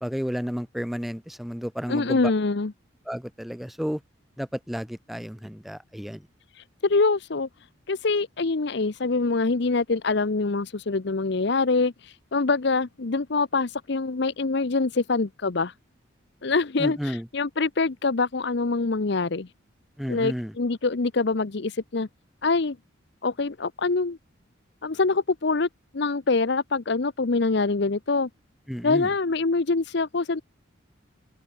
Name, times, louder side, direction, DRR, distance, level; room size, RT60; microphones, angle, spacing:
voice 1, 0.0-2.3 3.1-4.0 4.4-6.3 16.8-17.3 20.0-20.5 28.7-29.1, equal, ahead, 0.3 m, -32 dB
voice 2, 1.9-2.7 6.8-7.5 7.9-11.9 12.3-15.7 16.4-19.5 20.1-22.1 22.4-22.8 23.2-24.2 24.8-28.3 28.8-30.4, left 3 dB, 55° left, 0.7 m, -24 dB
open air
head